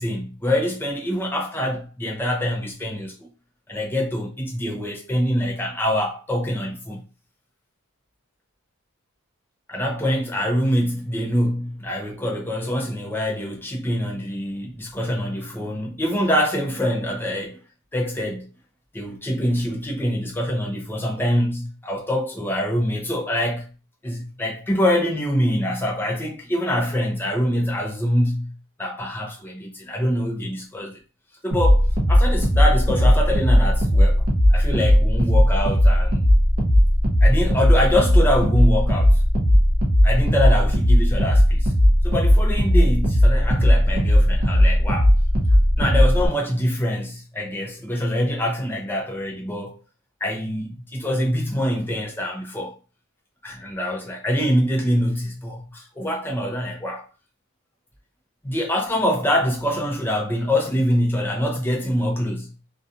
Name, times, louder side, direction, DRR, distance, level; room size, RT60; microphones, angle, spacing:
voice 1, 0.0-3.3 3.7-7.0 9.7-17.6 17.9-18.5 18.9-23.6 24.0-28.5 28.8-30.9 31.4-36.3 37.2-39.2 40.0-41.7 42.0-45.1 45.8-49.7 50.2-52.7 53.4-57.1 58.4-62.5, equal, 10° left, 0.6 m, -24 dB
sound 1, 31.5-46.3, equal, 40° right, 0.6 m, -17 dB
2.7 x 2.3 x 2.4 m
head